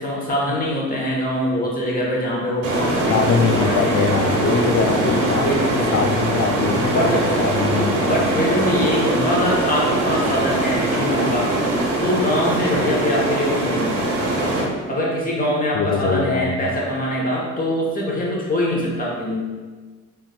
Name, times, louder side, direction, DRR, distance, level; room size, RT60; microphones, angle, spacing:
voice 1, 0.0-4.1 4.8-6.0 6.9-7.3 8.0-11.5 12.0-13.9 14.9-19.4, equal, 25° left, -3 dB, 1.3 m, -23 dB
sound 1, 2.6-14.6, right 2 dB, 75° right, 1.4 m, -22 dB
voice 2, 3.1-7.1 7.4-8.4 15.7-16.6, left 5 dB, 40° left, 5 dB, 0.5 m, -22 dB
4.1 x 3.5 x 2.3 m, 1.4 s
hypercardioid pair, 60°, 34 cm